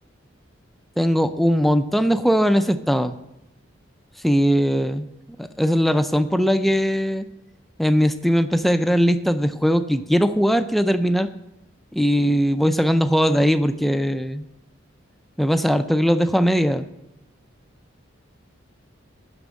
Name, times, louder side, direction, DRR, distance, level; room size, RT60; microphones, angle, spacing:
voice 1, 1.0-3.2 4.2-5.1 5.4-7.3 7.8-11.3 11.9-14.5 15.4-16.9, equal, ahead, 9 dB, 0.4 m, -20 dB
9.8 x 6.1 x 8.3 m, 0.87 s
head